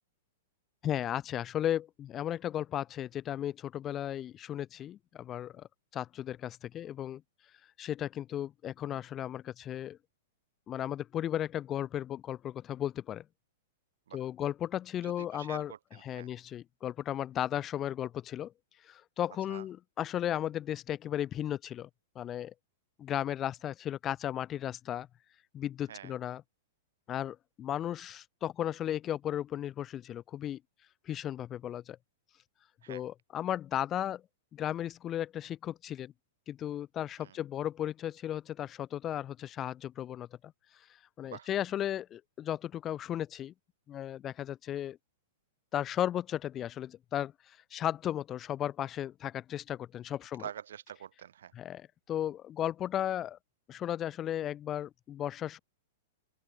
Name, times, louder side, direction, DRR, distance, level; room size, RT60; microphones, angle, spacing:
voice 1, 0.8-5.7 5.9-7.2 7.8-10.0 10.7-13.2 14.1-15.7 16.0-18.5 18.8-21.9 22.1-22.5 23.0-25.1 25.5-26.4 27.1-30.6 31.1-32.0 32.9-34.2 34.5-36.1 36.5-40.3 41.2-43.5 43.9-45.0 45.7-50.4 51.5-53.4 53.7-55.6, left 11 dB, 20° left, 1.7 m, -35 dB
voice 2, 15.0-16.3 19.5-19.6 25.9-26.1 32.8-33.0 37.2-37.4 41.2-41.5 50.4-51.5, right 10 dB, 80° right, 5.2 m, -46 dB
open air
supercardioid pair, 170°, 0 cm